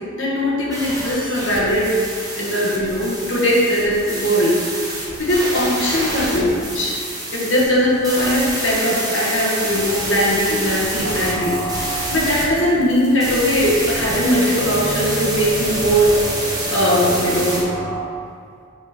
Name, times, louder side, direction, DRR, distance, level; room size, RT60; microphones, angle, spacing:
voice 1, 0.1-1.9 2.4-4.8 5.2-6.9 7.3-16.1 16.7-17.6, equal, 65° left, -6 dB, 1.7 m, -19 dB
sound 1, 0.7-17.6, right 1 dB, 20° right, 1.4 m, -27 dB
sound 2, 11.0-18.0, right 1 dB, 90° right, 0.9 m, -30 dB
7.2 x 4.3 x 5.2 m, 2.2 s
head